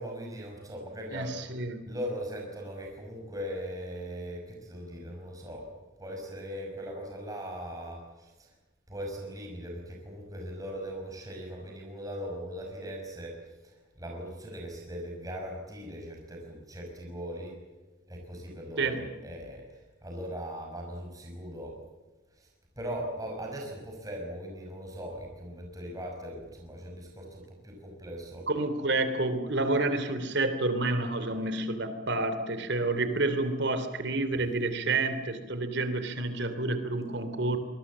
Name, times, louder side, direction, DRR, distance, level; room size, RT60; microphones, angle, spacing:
voice 1, 0.0-1.4 1.8-5.7 6.0-8.5 8.9-13.3 13.6-17.5 18.1-21.8 22.3-22.5 22.8-28.5, equal, 20° right, 0 dB, 5.6 m, -39 dB
voice 2, 1.1-1.9 18.8-19.0 28.5-37.6, right 2 dB, 60° right, 10 dB, 3.0 m, -29 dB
26.5 x 21.0 x 7.4 m, 1.2 s
head